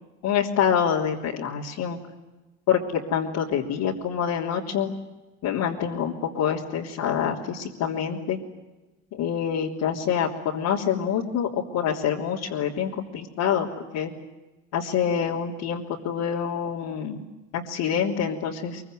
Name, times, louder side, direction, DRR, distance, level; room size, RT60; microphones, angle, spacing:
voice 1, 0.2-2.0 2.7-4.9 5.4-8.4 9.1-13.7 13.9-14.1 14.7-17.2 17.5-18.8, left 8 dB, 70° left, -4 dB, 3.4 m, -26 dB
23.5 x 23.5 x 9.3 m, 1.1 s
supercardioid pair, 85°, 33 cm